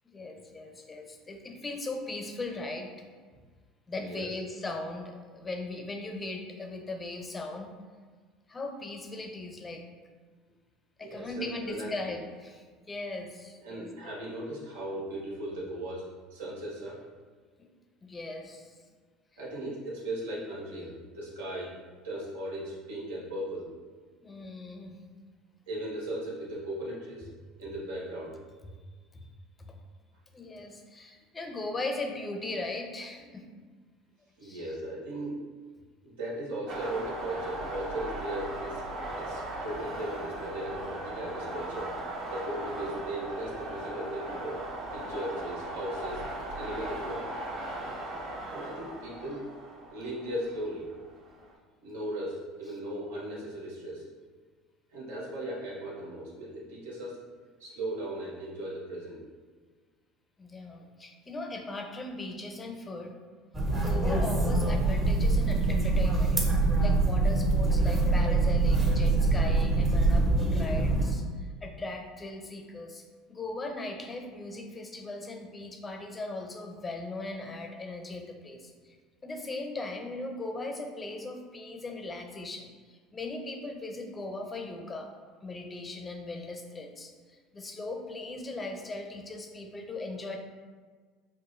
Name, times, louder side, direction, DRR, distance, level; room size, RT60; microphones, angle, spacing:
voice 1, 0.1-2.9 3.9-7.7 8.5-9.8 11.0-14.1 17.6-17.7 18.0-18.8 24.2-25.0 29.1-29.2 29.6-29.8 30.3-33.5 34.4-34.6 60.4-63.2 63.8-66.4 66.8-73.0 73.3-79.0 79.2-85.1 85.4-90.4, left 2 dB, 25° left, 3 dB, 0.5 m, -38 dB
voice 2, 4.0-4.3 11.0-12.1 13.6-17.0 19.4-21.7 22.0-23.7 25.7-27.3 27.6-28.3 34.4-35.4 36.0-38.8 39.2-41.9 42.3-44.6 44.9-46.2 46.6-47.3 48.5-49.5 49.9-50.9 51.8-54.1 54.9-57.2 57.6-59.2, right 1 dB, 90° right, -5 dB, 0.9 m, -37 dB
sound 1, 36.7-51.5, right 1 dB, 55° right, 0.9 m, -38 dB
sound 2, 63.5-71.1, right 2 dB, 20° right, 0.7 m, -24 dB
4.7 x 2.2 x 2.5 m, 1.5 s
supercardioid pair, 90°, 0 cm